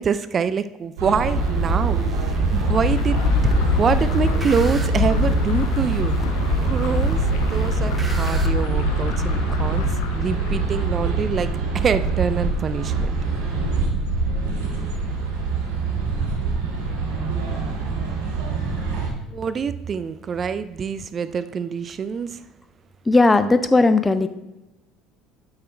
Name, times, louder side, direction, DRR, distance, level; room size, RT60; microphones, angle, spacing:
voice 1, 0.0-2.0 2.5-3.2 3.8-6.1 6.6-9.9 10.1-11.5 11.7-13.2 19.3-22.4, right 6 dB, 40° right, 13 dB, 0.4 m, -25 dB
sound 1, 1.0-19.1, right 4 dB, 80° right, 2.1 m, -24 dB
sound 2, 1.3-8.5, left 1 dB, 25° right, 1.0 m, -29 dB
sound 3, 2.7-11.3, left 7 dB, 75° left, 0.8 m, -27 dB
voice 2, 23.1-24.3, left 3 dB, 15° left, 10 dB, 0.6 m, -16 dB
7.7 x 5.8 x 4.4 m, 0.98 s
hypercardioid pair, 75°, 0 cm